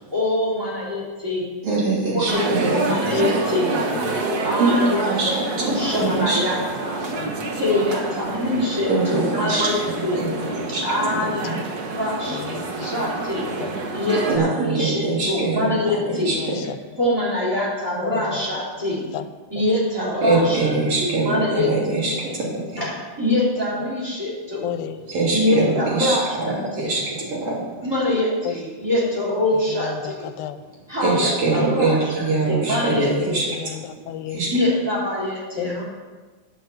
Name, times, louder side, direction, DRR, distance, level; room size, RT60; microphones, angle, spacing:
voice 1, 0.1-1.5 2.1-3.7 4.4-7.0 7.5-10.2 10.8-12.4 12.8-13.5 13.9-16.3 17.0-19.0 19.5-21.7 22.8-24.7 25.3-26.9 27.8-30.3 30.9-33.4 34.5-35.8, left 1 dB, 5° right, -6 dB, 3.9 m, -24 dB
voice 2, 1.6-2.7 4.6-4.7 5.0-5.3 5.6-6.4 8.9-9.7 10.1-10.3 10.7-10.8 11.4-11.5 14.3-15.8 16.3-16.4 20.2-22.5 25.1-25.4 25.9-26.2 26.8-27.6 31.0-33.4 34.3-34.5, right 3 dB, 50° right, -5 dB, 3.9 m, -22 dB
sound 1, 2.3-14.4, right 3 dB, 90° right, 0.8 m, -28 dB
voice 3, 3.8-4.2 7.2-7.3 10.2-10.7 11.5-11.6 12.3-12.9 13.6-13.8 15.9-16.8 18.0-18.5 19.1-19.3 21.9-22.9 24.6-25.0 26.8-27.1 28.5-28.6 29.7-30.6 33.3-34.4 35.6-35.8, left 10 dB, 85° left, 10 dB, 2.1 m, -33 dB
9.4 x 7.0 x 7.7 m, 1.3 s
omnidirectional pair, 3.6 m